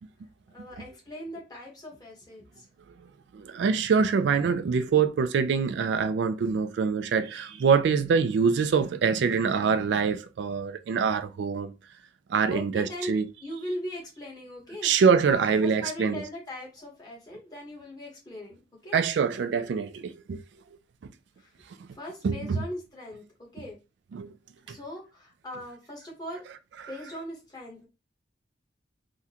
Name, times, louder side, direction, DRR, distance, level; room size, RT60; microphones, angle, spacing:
voice 1, 0.5-2.7 12.5-14.9 15.3-19.0 21.4-21.5 21.9-23.8 24.7-26.4 26.9-27.9, left 1 dB, 20° left, 1.1 m, -40 dB
voice 2, 3.3-11.7 12.3-13.3 14.8-16.2 18.9-20.4 21.0-21.1 22.2-22.6 24.1-24.3 24.7-24.8 26.8-26.9, right 6 dB, 70° right, 0.3 m, -25 dB
3.6 x 2.1 x 2.8 m
head